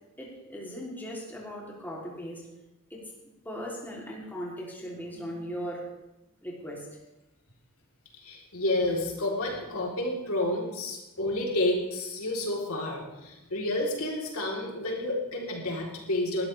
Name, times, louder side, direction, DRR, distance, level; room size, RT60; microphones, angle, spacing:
voice 1, 0.2-2.4 2.9-3.0 3.4-5.9 6.4-6.9, equal, 10° left, -4 dB, 3.1 m, -38 dB
voice 2, 8.2-16.5, left 1 dB, 70° left, -2 dB, 3.6 m, -30 dB
21.0 x 13.0 x 3.4 m, 0.96 s
head